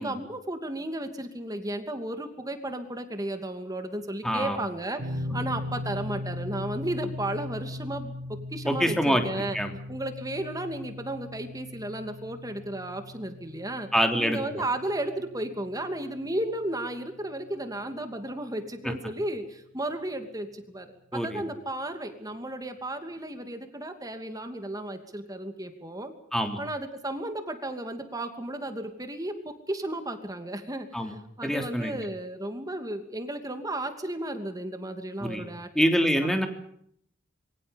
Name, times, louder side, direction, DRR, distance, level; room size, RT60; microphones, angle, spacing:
voice 1, 0.0-9.6 9.9-13.9 14.2-26.1 26.6-36.5, right 1 dB, 20° right, 7 dB, 2.7 m, -34 dB
voice 2, 4.2-4.6 8.6-9.2 9.5-9.7 13.9-14.4 18.8-18.9 21.1-21.4 26.3-26.6 30.9-31.1 31.4-32.0 35.2-35.5 35.7-36.5, equal, ahead, 5 dB, 3.4 m, -25 dB
sound 1, 5.0-17.9, left 1 dB, 80° right, 4.1 m, -39 dB
26.5 x 24.5 x 5.4 m, 0.68 s
head